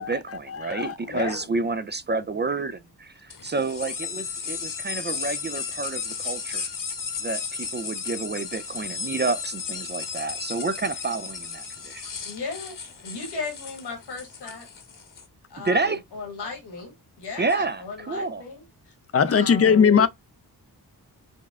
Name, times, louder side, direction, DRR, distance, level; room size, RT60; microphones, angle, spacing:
voice 1, 0.0-6.7 7.2-12.1 15.6-16.0 17.4-18.4, right 3 dB, 30° right, 0.4 m, -29 dB
voice 2, 1.0-1.5 12.2-12.8 13.0-14.7 15.5-18.9 19.3-19.9, left 4 dB, 80° left, 1.7 m, -36 dB
sound 1, 3.3-15.2, left 6 dB, 55° left, 1.1 m, -34 dB
voice 3, 19.1-20.1, left 6 dB, 35° left, 0.6 m, -18 dB
5.3 x 2.2 x 3.5 m
cardioid pair, 50°, 39 cm